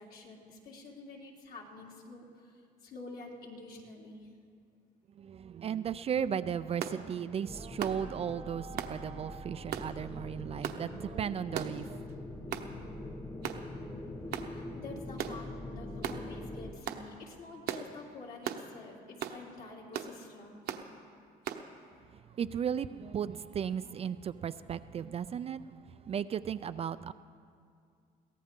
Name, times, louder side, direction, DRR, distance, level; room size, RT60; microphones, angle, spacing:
voice 1, 0.0-4.3 14.3-20.6, left 3 dB, 60° left, 3.1 m, -48 dB
voice 2, 5.2-12.0 22.1-27.1, right 8 dB, 35° right, 0.4 m, -35 dB
sound 1, 6.8-7.0 7.8-8.0 8.8-9.0 9.7-9.9 10.6-10.8 11.5-11.8 12.5-12.7 13.4-13.6 14.3-14.5 15.2-15.4 16.0-16.2 16.9-17.0 17.7-17.9 18.4-18.7 19.2-19.4 19.9-20.1 20.7-20.9 21.5-21.6, right 9 dB, 70° right, 1.0 m, -37 dB
sound 2, 7.5-16.7, left 1 dB, 20° left, 1.4 m, -43 dB
22.5 x 16.5 x 3.7 m
cardioid pair, 110°, 17 cm